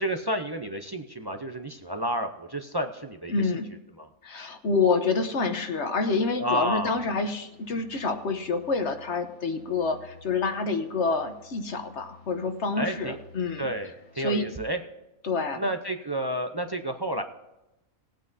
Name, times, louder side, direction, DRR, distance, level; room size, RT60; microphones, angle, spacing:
voice 1, 0.0-3.3 4.0-4.1 6.4-7.0 12.8-13.2 13.6-14.8 15.6-17.2, right 1 dB, 30° right, 6 dB, 0.4 m, -30 dB
voice 2, 3.3-3.7 4.2-13.7 14.2-14.4 15.2-15.6, left 4 dB, 55° left, 7 dB, 1.2 m, -27 dB
sound 1, 6.7-14.4, left 5 dB, 80° left, 4.5 m, -54 dB
19.5 x 9.0 x 2.7 m, 0.94 s
omnidirectional pair, 1.5 m